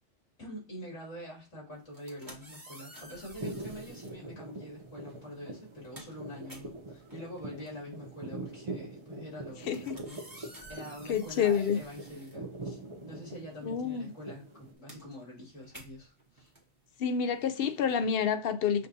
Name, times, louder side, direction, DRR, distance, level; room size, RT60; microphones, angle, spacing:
voice 1, 0.4-16.5, equal, 90° left, 2.9 m, -45 dB
sound 1, 1.8-4.2 5.1-5.3 5.6-13.1 13.4-18.0, right 1 dB, 15° right, 1.3 m, -53 dB
sound 2, 3.4-14.7, right 2 dB, 40° right, 0.4 m, -44 dB
voice 2, 11.1-11.8 13.7-14.1 17.0-18.9, left 7 dB, 65° left, 0.7 m, -28 dB
6.7 x 2.6 x 2.6 m
omnidirectional pair, 1.2 m